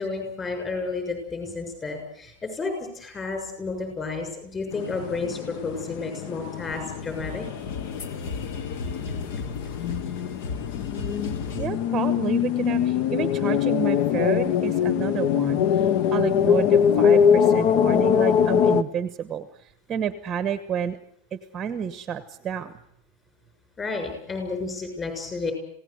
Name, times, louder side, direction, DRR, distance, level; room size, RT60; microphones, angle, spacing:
voice 1, 0.0-7.5 23.8-25.5, left 3 dB, 15° left, 5 dB, 6.6 m, -31 dB
sound 1, 4.7-18.8, left 8 dB, 40° left, 1.0 m, -23 dB
sound 2, 6.5-11.7, left 4 dB, 60° left, 2.8 m, -35 dB
voice 2, 11.6-15.9 16.1-21.0 21.3-22.7, right 8 dB, 20° right, 11 dB, 1.0 m, -30 dB
27.0 x 17.5 x 8.0 m, 0.70 s
supercardioid pair, 165°, 0 cm